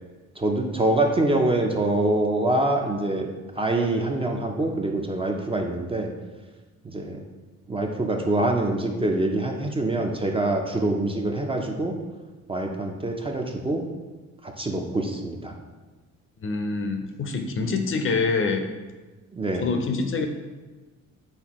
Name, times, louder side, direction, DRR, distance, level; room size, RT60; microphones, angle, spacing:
voice 1, 0.4-3.3 3.6-6.1 6.8-7.2 7.7-11.9 12.5-13.8 14.4-15.5 19.3-19.6, right 2 dB, 20° right, 2 dB, 0.4 m, -25 dB
voice 2, 16.4-18.6 19.5-20.3, left 4 dB, 45° left, 5 dB, 0.5 m, -25 dB
4.2 x 3.7 x 3.0 m, 1.2 s
cardioid pair, 90°, 30 cm